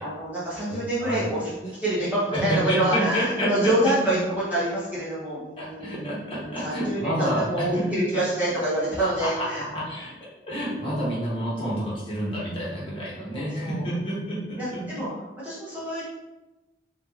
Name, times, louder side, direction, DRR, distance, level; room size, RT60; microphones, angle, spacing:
voice 1, 0.0-9.6 13.2-13.9 14.6-15.1 15.4-16.0, right 1 dB, 10° right, -10 dB, 1.0 m, -27 dB
voice 2, 0.7-1.3 2.3-4.1 5.6-7.8 8.1-8.2 9.0-10.1 10.5-15.0, equal, 30° left, -7 dB, 1.5 m, -29 dB
5.1 x 3.0 x 2.9 m, 1.1 s
head